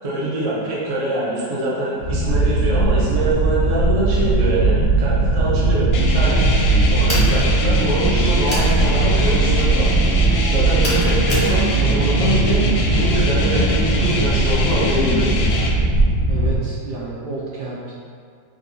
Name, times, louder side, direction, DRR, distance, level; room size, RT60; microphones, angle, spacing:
voice 1, 0.0-9.9 10.5-15.3, right 2 dB, 45° right, -7 dB, 0.9 m, -24 dB
sound 1, 2.0-16.6, right 3 dB, 90° right, 1.9 m, -19 dB
sound 2, 5.9-15.7, left 2 dB, 85° left, 1.4 m, -24 dB
sound 3, 7.1-7.4 8.5-8.7 10.8-11.5, equal, 35° left, 0.4 m, -26 dB
voice 2, 16.3-17.9, right 3 dB, 70° right, -7 dB, 1.2 m, -30 dB
6.2 x 2.3 x 2.6 m, 2.1 s
omnidirectional pair, 2.1 m